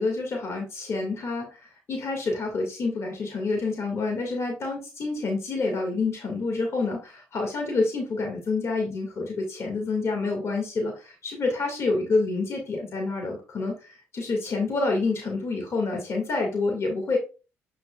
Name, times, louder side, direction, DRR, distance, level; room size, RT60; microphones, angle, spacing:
voice 1, 0.0-17.2, left 3 dB, 55° left, 1 dB, 2.4 m, -28 dB
8.0 x 4.7 x 2.5 m, 0.32 s
supercardioid pair, 60°, 6 cm